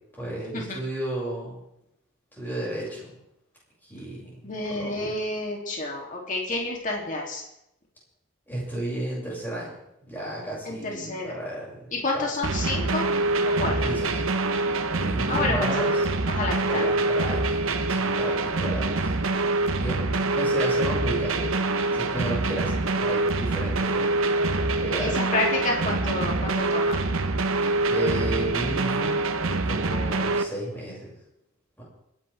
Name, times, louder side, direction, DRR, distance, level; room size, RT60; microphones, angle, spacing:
voice 1, 0.2-1.6 2.3-3.1 3.8-5.2 8.5-9.7 10.1-12.3 13.5-14.3 15.0-16.0 16.6-19.2 19.8-21.5 21.9-24.3 24.8-25.2 27.9-29.2 29.6-31.1 31.8-31.9, right 1 dB, 10° left, -6 dB, 6.8 m, -33 dB
voice 2, 4.4-7.4 10.7-11.3 11.9-13.1 13.6-13.9 15.3-16.0 16.3-16.8 25.0-27.0, left 2 dB, 40° left, -1 dB, 3.1 m, -29 dB
sound 1, 12.4-30.4, right 2 dB, 75° right, 1.2 m, -25 dB
28.0 x 11.0 x 3.6 m, 0.82 s
head